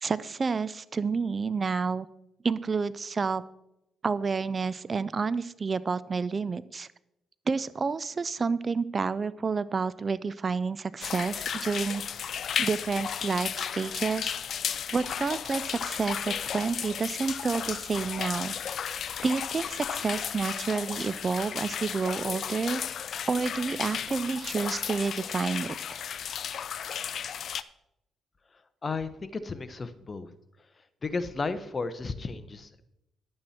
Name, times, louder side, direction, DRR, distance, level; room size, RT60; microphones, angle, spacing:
voice 1, 0.0-2.1 2.4-3.4 4.0-6.9 7.5-12.0 12.6-14.4 14.9-18.5 19.2-22.8 23.3-25.8, right 4 dB, 40° right, 18 dB, 0.4 m, -29 dB
sound 1, 11.0-27.6, left 8 dB, 60° left, 0.4 m, -34 dB
voice 2, 28.8-30.3 31.0-32.8, left 4 dB, 35° left, 12 dB, 0.9 m, -33 dB
11.0 x 8.7 x 4.3 m, 0.85 s
supercardioid pair, 70°, 0 cm